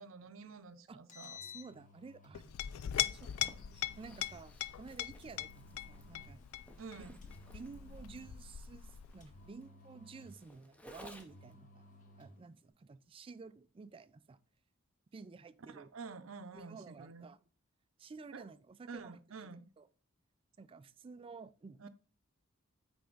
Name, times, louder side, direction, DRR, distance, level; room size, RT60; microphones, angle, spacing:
voice 1, 0.0-1.4 6.8-7.2 15.7-17.3 18.3-18.4 18.9-19.7 21.8-21.9, right 4 dB, 70° right, 0.6 m, -49 dB
Engine, 0.9-2.4 3.2-4.4 5.2-6.5 7.2-8.5 9.2-10.5 11.2-12.4, left 4 dB, 40° left, 1.1 m, -56 dB
voice 2, 1.4-2.7 3.0-6.5 7.0-7.1 7.5-11.8 12.2-14.4 15.1-15.9 16.5-17.4 18.0-19.9 20.6-21.9, right 4 dB, 25° right, 0.3 m, -52 dB
Chink clink, 2.3-9.5, left 12 dB, 80° left, 0.3 m, -41 dB
Zipper (clothing), 2.8-11.5, equal, 5° left, 0.6 m, -58 dB
8.4 x 3.4 x 3.8 m
head